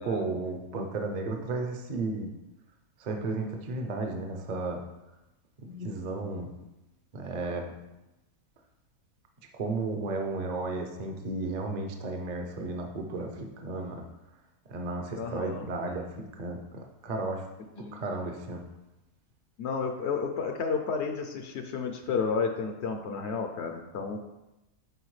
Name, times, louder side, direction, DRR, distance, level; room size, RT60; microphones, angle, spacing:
voice 1, 0.0-2.3 3.0-4.8 5.6-6.5 7.1-7.7 9.5-14.0 14.7-17.5 17.7-18.6, right 3 dB, 45° right, 3 dB, 0.6 m, -34 dB
voice 2, 15.2-15.7 17.8-18.0 19.6-24.2, left 5 dB, 65° left, 5 dB, 0.7 m, -31 dB
7.8 x 4.6 x 3.2 m, 0.97 s
omnidirectional pair, 1.5 m